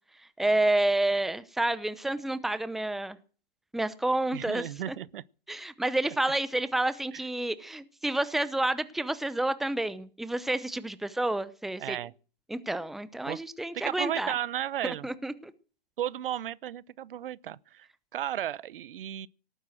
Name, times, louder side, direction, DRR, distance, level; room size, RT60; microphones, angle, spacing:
voice 1, 0.4-3.2 3.7-5.0 5.5-12.0 12.5-14.3 14.8-15.5, right 1 dB, ahead, 0.7 m, -29 dB
voice 2, 4.3-5.2 7.1-7.2 11.8-12.1 13.3-13.4 13.7-15.1 16.0-19.3, right 11 dB, 65° right, 0.8 m, -34 dB
18.0 x 9.5 x 7.6 m
hypercardioid pair, 130°, 30 cm